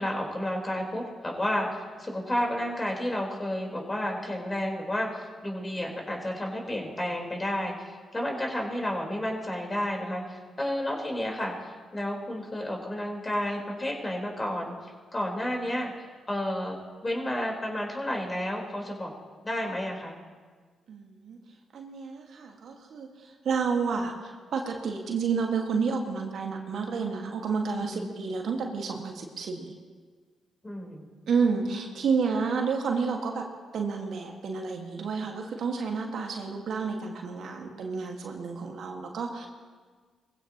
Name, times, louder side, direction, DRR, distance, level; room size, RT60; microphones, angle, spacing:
voice 1, 0.0-14.7 15.1-15.9 16.3-16.8 17.0-19.1 19.4-20.2 27.9-28.1 30.6-31.0, left 1 dB, 25° left, 0 dB, 4.1 m, -31 dB
voice 2, 20.9-21.4 21.7-29.8 31.3-33.4 33.7-39.5, right 5 dB, 65° right, 2 dB, 1.8 m, -30 dB
21.0 x 16.0 x 3.0 m, 1.5 s
hypercardioid pair, 40°, 0 cm